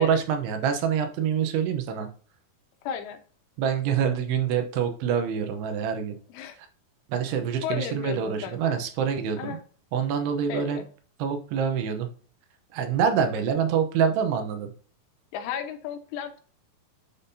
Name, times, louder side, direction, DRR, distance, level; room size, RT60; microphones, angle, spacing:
voice 1, 0.0-2.1 3.6-6.2 7.1-9.6 9.9-10.8 11.2-12.1 12.7-14.7, right 7 dB, 85° right, 6 dB, 3.0 m, -26 dB
voice 2, 2.8-3.2 6.3-6.6 7.6-8.6 9.4-9.6 10.5-10.8 15.3-16.4, left 9 dB, 85° left, 7 dB, 2.9 m, -34 dB
10.5 x 3.8 x 2.7 m, 0.42 s
omnidirectional pair, 4.6 m